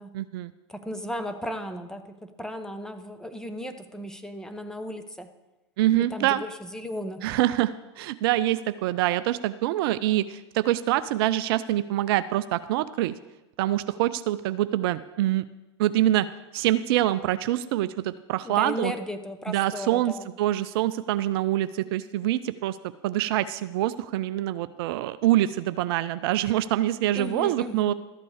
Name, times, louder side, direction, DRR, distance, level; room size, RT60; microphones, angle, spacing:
voice 1, 0.1-0.5 5.8-6.4 7.2-13.1 13.6-15.4 15.8-16.3 16.5-18.9 19.5-20.1 20.4-22.8 23.0-27.9, right 14 dB, 55° right, 13 dB, 0.4 m, -25 dB
voice 2, 0.7-5.3 6.1-7.3 18.4-20.3 27.1-27.9, left 1 dB, 5° left, 7 dB, 0.9 m, -35 dB
13.0 x 8.4 x 4.8 m, 1.0 s
hypercardioid pair, 100°, 15 cm